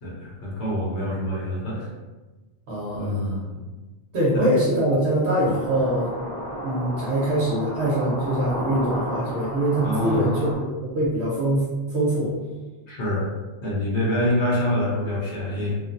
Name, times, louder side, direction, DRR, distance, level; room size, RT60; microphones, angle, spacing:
voice 1, 0.0-1.9 2.9-3.6 4.3-4.5 9.8-10.3 12.9-13.3 13.6-15.7, left 1 dB, 75° left, -6 dB, 1.1 m, -26 dB
voice 2, 2.7-3.4 4.1-6.1 6.6-11.7 11.9-12.3, right 1 dB, 70° right, -7 dB, 1.0 m, -23 dB
sound 1, 5.4-10.5, right 1 dB, 25° left, 0.7 m, -32 dB
3.0 x 2.2 x 2.5 m, 1.2 s
omnidirectional pair, 1.2 m